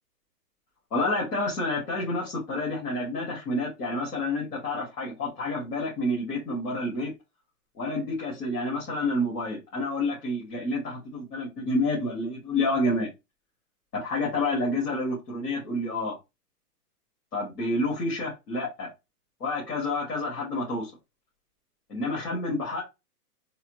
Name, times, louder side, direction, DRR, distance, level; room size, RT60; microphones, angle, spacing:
voice 1, 0.9-7.1 7.8-13.1 13.9-16.2 17.3-18.9 19.4-20.9 21.9-22.8, left 2 dB, 80° left, 2.1 m, -29 dB
4.1 x 2.1 x 3.1 m
hypercardioid pair, 145°, 47 cm